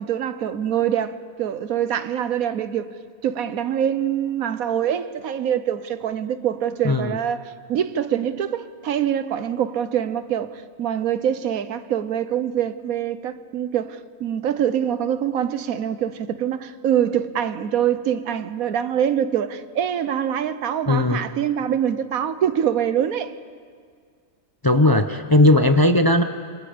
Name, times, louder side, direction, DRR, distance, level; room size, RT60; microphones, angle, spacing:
voice 1, 0.0-2.9 3.2-23.3, right 9 dB, 90° right, 1.3 m, -24 dB
voice 2, 6.8-7.2 20.9-21.2 24.6-26.2, left 2 dB, 25° left, 0.5 m, -17 dB
27.5 x 25.5 x 5.1 m
omnidirectional pair, 1.4 m